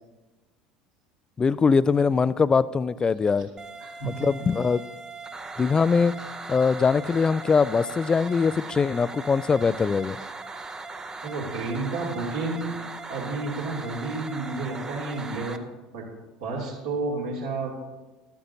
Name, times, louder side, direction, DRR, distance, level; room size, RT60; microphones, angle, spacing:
voice 1, 1.4-3.5 4.0-4.8 5.6-6.1 6.5-10.2, left 5 dB, 20° left, 18 dB, 0.3 m, -22 dB
sound 1, 3.6-15.6, right 3 dB, 20° right, 0.7 m, -39 dB
voice 2, 3.8-4.1 11.2-12.7 13.1-15.6 15.9-16.1 16.4-17.8, right 3 dB, 65° right, -2 dB, 2.8 m, -31 dB
13.0 x 12.5 x 2.7 m, 1.1 s
figure-of-eight pair, 65°, 4 cm